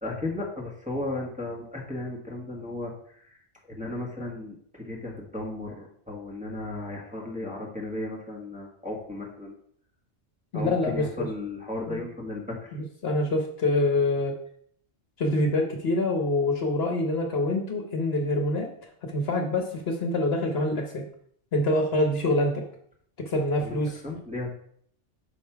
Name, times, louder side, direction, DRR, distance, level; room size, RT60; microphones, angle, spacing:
voice 1, 0.0-3.4 3.7-9.6 10.5-12.8 23.6-23.8 24.0-24.5, left 2 dB, 5° right, -4 dB, 1.4 m, -35 dB
voice 2, 10.5-11.3 11.9-12.0 12.7-14.4 15.2-18.7 19.0-21.0 21.5-22.6 23.2-24.0, left 2 dB, 60° left, 3 dB, 1.2 m, -26 dB
5.8 x 5.3 x 4.6 m, 0.63 s
omnidirectional pair, 1.2 m